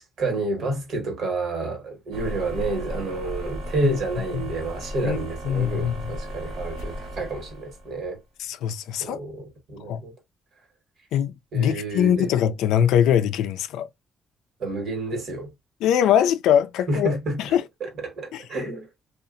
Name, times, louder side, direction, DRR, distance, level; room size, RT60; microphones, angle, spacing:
voice 1, 0.0-8.2 9.0-10.1 11.5-12.4 14.6-15.5 16.9-17.4 17.8-18.9, right 2 dB, 65° right, 1.2 m, -29 dB
sound 1, 2.1-8.1, equal, 90° right, 0.8 m, -35 dB
voice 2, 5.4-6.2 8.4-9.2 9.9-10.0 11.1-13.9 15.8-17.1 17.4-17.6 18.3-18.4, left 9 dB, 90° left, 0.3 m, -22 dB
2.8 x 2.4 x 2.4 m
cardioid pair, 90°, 0 cm